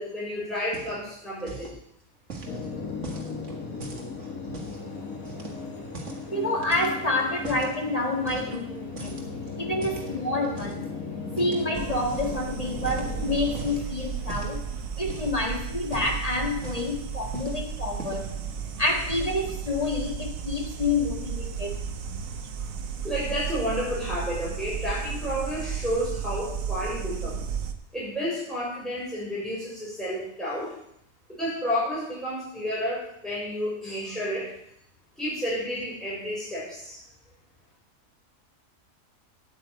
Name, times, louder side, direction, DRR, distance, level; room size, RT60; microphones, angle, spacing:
voice 1, 0.0-1.8 23.0-27.4 27.9-30.8 31.4-34.5 35.2-37.0, equal, ahead, -8 dB, 6.3 m, -31 dB
sound 1, 0.6-1.1 1.4-1.8 2.3-4.8 5.2-6.3 6.6-7.8 8.2-8.7 9.0-10.9 11.4-11.7 12.1-12.4 12.7-13.8 14.3-14.6 15.0-15.4 15.8-17.0 17.3-17.6 17.9-18.4, right 4 dB, 60° right, 2.1 m, -40 dB
sound 2, 2.4-13.8, left 4 dB, 90° left, 2.3 m, -37 dB
voice 2, 6.3-9.2 9.6-10.9 11.4-14.7 15.0-18.3 18.8-21.8, left 2 dB, 25° left, 1 dB, 1.9 m, -28 dB
sound 3, 11.7-27.7, right 7 dB, 75° right, 1.3 m, -34 dB
9.1 x 9.0 x 8.4 m, 0.73 s
omnidirectional pair, 1.4 m